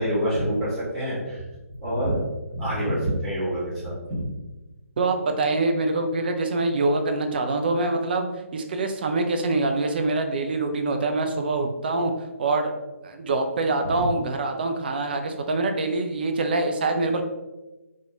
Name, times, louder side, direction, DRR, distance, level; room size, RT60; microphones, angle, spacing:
voice 1, 0.0-1.4 1.8-2.2 2.5-4.3 13.8-14.1, equal, ahead, -11 dB, 1.2 m, -26 dB
voice 2, 5.0-12.1 12.4-12.7 13.0-17.2, right 2 dB, 40° right, 5 dB, 0.3 m, -25 dB
3.2 x 2.2 x 2.8 m, 1.1 s
figure-of-eight pair, 140°, 8 cm